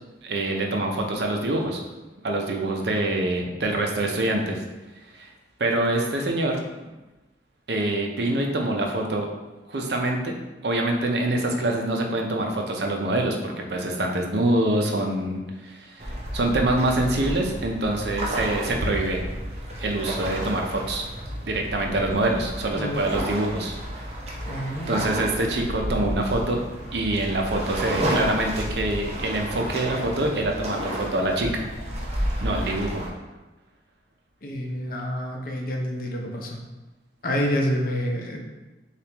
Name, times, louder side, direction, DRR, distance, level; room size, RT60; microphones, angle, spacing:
voice 1, 0.2-1.8 2.2-4.6 5.1-5.3 5.6-6.6 7.7-9.3 9.7-10.3 10.6-19.2 19.8-21.0 21.4-23.8 24.9-26.6 26.9-31.6 32.4-33.0, right 1 dB, 70° right, 1 dB, 0.7 m, -25 dB
sound 1, 16.0-33.1, right 1 dB, 35° right, 0.8 m, -31 dB
voice 2, 24.5-25.0 34.4-36.6 37.2-38.4, equal, 55° left, 1 dB, 0.7 m, -28 dB
6.6 x 2.5 x 2.9 m, 1.1 s
head